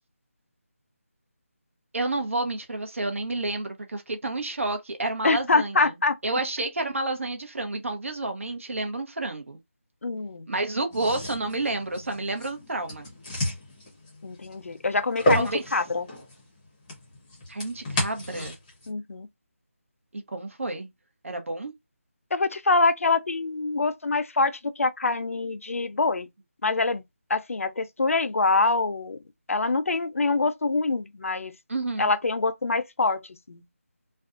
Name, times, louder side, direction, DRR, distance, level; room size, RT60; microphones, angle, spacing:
voice 1, 1.9-5.9 6.2-9.6 10.5-13.1 15.3-15.7 17.5-18.6 20.1-20.9 21.2-21.7 31.7-32.1, right 2 dB, 65° right, 0.9 m, -30 dB
voice 2, 5.2-6.2 10.0-10.5 14.2-16.0 18.9-19.3 22.3-26.3 26.6-27.0 27.3-29.2 29.5-31.5 32.0-33.2 33.5-33.6, left 3 dB, 75° left, 0.5 m, -25 dB
sound 1, 10.9-18.9, equal, 10° left, 0.7 m, -32 dB
2.5 x 2.2 x 2.4 m
figure-of-eight pair, 170°, 8 cm